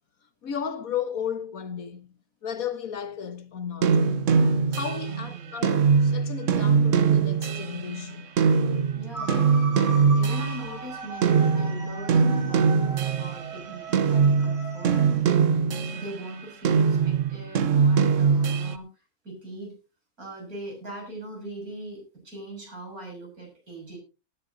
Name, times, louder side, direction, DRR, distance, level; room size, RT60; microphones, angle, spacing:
voice 1, 0.4-2.1 2.4-4.0 4.7-8.3, left 8 dB, 70° left, 1.7 m, -34 dB
sound 1, 3.8-11.0 11.2-13.5 13.9-16.2 16.6-18.8, right 5 dB, 60° right, 1.2 m, -22 dB
voice 2, 5.1-5.6 8.9-9.4 10.1-15.0 15.9-19.8 20.2-24.0, right 1 dB, 75° right, 7.4 m, -40 dB
sound 2, 9.1-15.2, right 3 dB, 20° right, 5.3 m, -38 dB
19.0 x 11.0 x 2.7 m
omnidirectional pair, 1.5 m